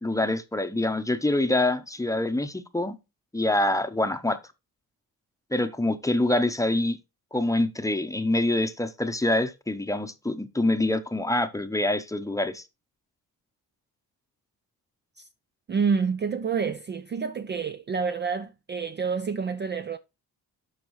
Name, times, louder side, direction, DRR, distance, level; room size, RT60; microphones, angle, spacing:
voice 1, 0.0-2.9 3.3-4.4 5.5-7.0 7.3-12.6, left 1 dB, 10° left, 0.8 m, -25 dB
voice 2, 15.7-20.0, right 5 dB, 30° right, 0.4 m, -28 dB
11.5 x 4.8 x 3.1 m
cardioid pair, 115°, 36 cm